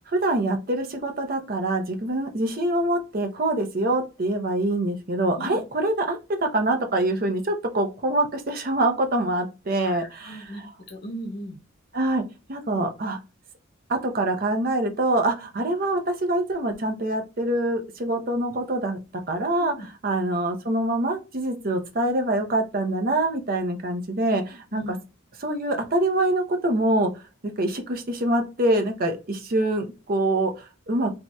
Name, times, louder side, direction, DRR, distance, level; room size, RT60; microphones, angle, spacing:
voice 1, 0.1-10.5 11.9-12.2 12.5-13.2 13.9-19.0 19.3-25.0 25.4-27.2 27.6-31.1, right 1 dB, 45° right, 5 dB, 0.6 m, -25 dB
voice 2, 9.8-11.6 19.6-19.9 24.7-24.9, right 1 dB, 55° left, 0 dB, 1.0 m, -37 dB
3.0 x 2.7 x 2.2 m, 0.28 s
head